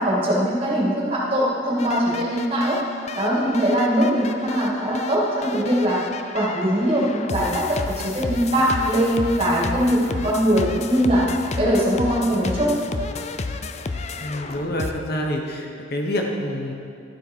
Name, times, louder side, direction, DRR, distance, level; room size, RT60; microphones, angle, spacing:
voice 1, 0.0-2.8 3.1-6.0 6.3-7.8 8.1-11.2 11.6-12.7, equal, 30° right, -5 dB, 2.3 m, -21 dB
sound 1, 1.8-14.9, left 3 dB, 35° left, 0.4 m, -32 dB
voice 2, 14.2-16.7, equal, 55° left, 1 dB, 1.1 m, -27 dB
12.0 x 7.7 x 4.6 m, 2.6 s
head